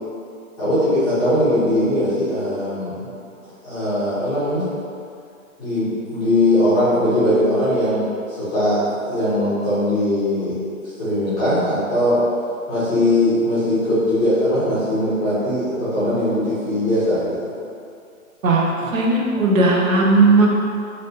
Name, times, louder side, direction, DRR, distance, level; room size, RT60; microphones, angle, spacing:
voice 1, 0.6-3.1 3.6-4.7 5.6-8.1 8.3-10.6 11.0-12.2 12.7-17.5, left 1 dB, 10° left, -15 dB, 0.5 m, -20 dB
voice 2, 18.4-20.5, right 3 dB, 70° right, -2 dB, 0.7 m, -16 dB
3.3 x 2.6 x 2.6 m, 2.4 s
hypercardioid pair, 140°, 42 cm